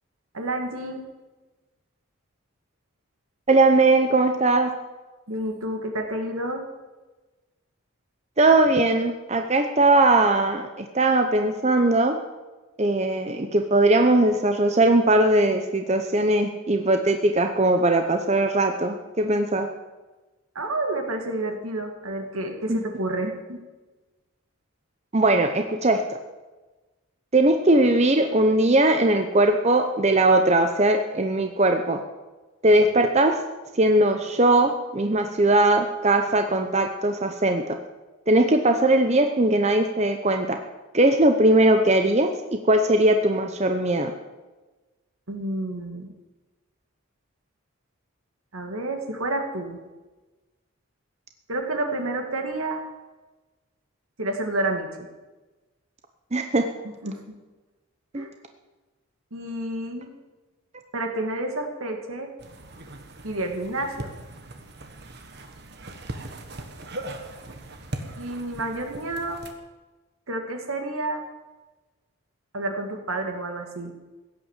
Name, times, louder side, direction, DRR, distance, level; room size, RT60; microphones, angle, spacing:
voice 1, 0.3-1.0 5.3-6.6 20.5-23.6 45.3-46.1 48.5-49.8 51.5-52.8 54.2-55.1 57.0-57.4 58.1-58.3 59.3-60.1 60.9-62.3 63.2-64.1 68.2-69.4 70.3-71.2 72.5-73.9, right 2 dB, 75° right, 4 dB, 2.4 m, -29 dB
voice 2, 3.5-4.7 8.4-12.2 12.8-19.7 22.7-22.8 25.1-26.0 27.3-32.0 32.6-33.4 33.7-37.8 38.3-40.6 40.9-44.1 56.3-56.7 58.1-58.2, right 2 dB, 30° right, 5 dB, 0.8 m, -20 dB
sound 1, 62.4-69.5, right 1 dB, 50° right, 1.5 m, -39 dB
16.5 x 10.0 x 7.5 m, 1.2 s
head